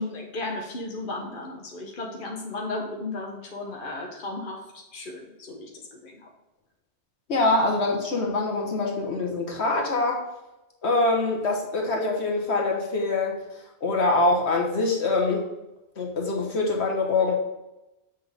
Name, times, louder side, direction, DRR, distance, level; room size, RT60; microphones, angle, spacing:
voice 1, 0.0-4.6 4.9-5.2 5.5-5.7 6.0-6.1, left 2 dB, 50° left, 0 dB, 1.3 m, -34 dB
voice 2, 7.3-10.2 10.8-13.4 13.8-15.4 16.0-17.3, left 2 dB, 75° left, 1 dB, 1.6 m, -24 dB
7.3 x 6.0 x 3.5 m, 0.96 s
omnidirectional pair, 1.1 m